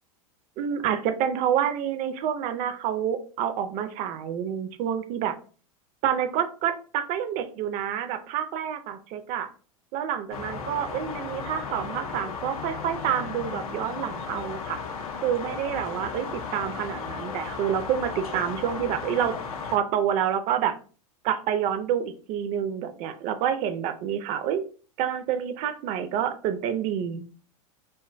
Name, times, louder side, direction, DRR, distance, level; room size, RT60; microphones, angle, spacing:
voice 1, 0.6-5.4 6.0-9.5 9.9-14.8 15.2-19.3 19.6-20.7 21.2-24.6 25.0-27.3, right 9 dB, 40° right, 9 dB, 0.4 m, -28 dB
sound 1, 10.3-19.8, left 5 dB, 85° left, 0.5 m, -35 dB
2.6 x 2.2 x 2.4 m, 0.39 s
hypercardioid pair, 100°, 18 cm